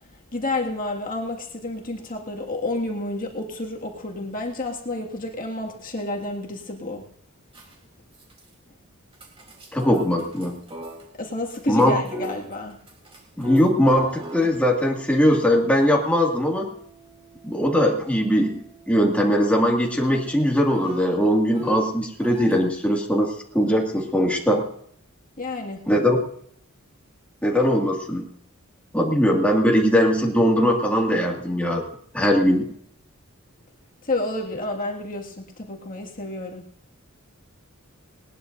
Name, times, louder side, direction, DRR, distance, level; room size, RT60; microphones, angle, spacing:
voice 1, 0.3-7.0 11.2-12.8 25.4-25.9 34.0-36.6, left 2 dB, 40° left, 0 dB, 2.0 m, -30 dB
sound 1, 7.5-7.8 8.1-8.5 9.1-11.1 11.5-22.6 24.1-24.3, right 1 dB, 25° right, 3.4 m, -40 dB
voice 2, 9.7-10.6 11.7-12.0 13.4-16.7 17.4-24.6 25.9-26.2 27.4-28.3 28.9-31.8 32.1-32.7, equal, 5° left, -1 dB, 2.1 m, -20 dB
20.0 x 19.5 x 2.6 m, 0.64 s
head